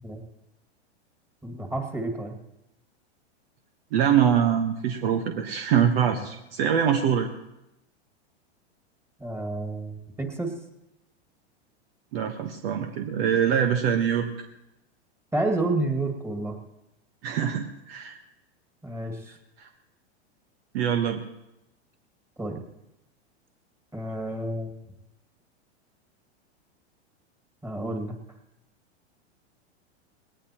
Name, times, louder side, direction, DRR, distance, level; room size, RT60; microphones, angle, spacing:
voice 1, 1.4-2.4 9.2-10.6 15.3-16.6 18.8-19.3 22.4-22.6 23.9-24.8 27.6-28.2, right 2 dB, 10° right, 3 dB, 2.1 m, -30 dB
voice 2, 3.9-7.3 12.1-14.3 17.2-18.2 19.6-19.7 20.7-21.2, right 8 dB, 60° right, 5 dB, 1.3 m, -24 dB
20.0 x 18.5 x 3.0 m, 0.89 s
hypercardioid pair, 120°, 34 cm